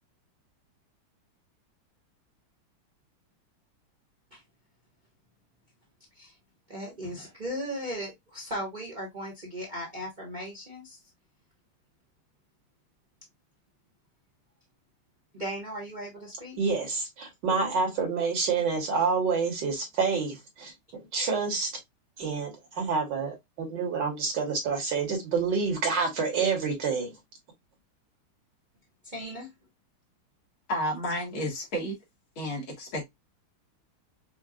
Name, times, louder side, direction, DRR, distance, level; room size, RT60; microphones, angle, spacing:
voice 1, 6.7-11.0 15.3-16.6 29.0-29.5, equal, 30° right, 1.0 m, -37 dB
voice 2, 16.6-21.7 22.2-27.1, right 5 dB, 60° right, 1.8 m, -28 dB
voice 3, 30.7-31.9 32.4-33.0, equal, 75° left, 2.3 m, -31 dB
5.6 x 2.3 x 2.3 m
omnidirectional pair, 2.3 m